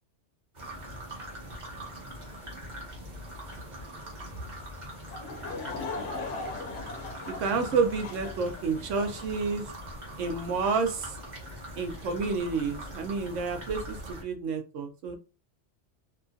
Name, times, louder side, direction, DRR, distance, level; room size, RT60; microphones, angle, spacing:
sound 1, 0.5-14.2, equal, 40° right, 1.1 m, -42 dB
Laughter / Crowd, 5.1-9.3, left 3 dB, 90° left, 1.0 m, -39 dB
voice 1, 7.4-9.6 10.2-11.1 11.8-15.2, right 4 dB, 90° right, 6 dB, 1.0 m, -29 dB
2.9 x 2.3 x 2.6 m, 0.31 s
omnidirectional pair, 1.2 m